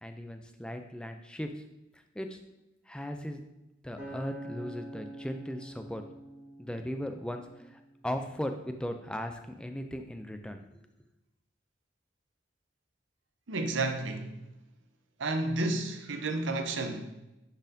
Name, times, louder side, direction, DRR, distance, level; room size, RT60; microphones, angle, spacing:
voice 1, 0.0-1.6 1.9-2.4 2.9-3.4 3.8-6.0 6.6-10.8, equal, 5° left, 0.4 m, -38 dB
Acoustic guitar, 4.0-8.3 8.9-9.2, right 1 dB, 10° right, 1.8 m, -46 dB
voice 2, 13.5-14.3 15.2-17.1, right 2 dB, 85° right, 0.7 m, -31 dB
9.9 x 4.2 x 2.7 m
head